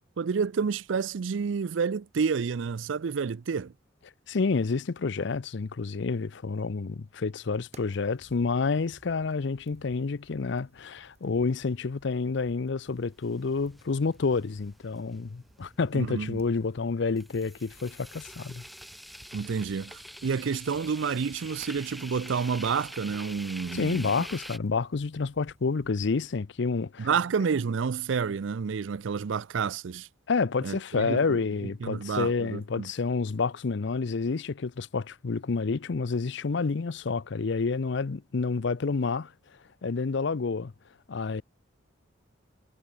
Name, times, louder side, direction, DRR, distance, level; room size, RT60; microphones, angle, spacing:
voice 1, 0.2-3.7 15.9-16.4 19.3-24.2 27.0-30.1 30.6-32.9, right 5 dB, 65° right, 0.4 m, -29 dB
voice 2, 4.3-18.6 23.7-27.1 30.3-39.3 39.8-40.7 41.1-41.4, left 4 dB, 60° left, 0.5 m, -29 dB
sound 1, 7.7-25.9, right 2 dB, 35° right, 1.7 m, -58 dB
sound 2, 12.8-24.6, equal, ahead, 1.1 m, -46 dB
head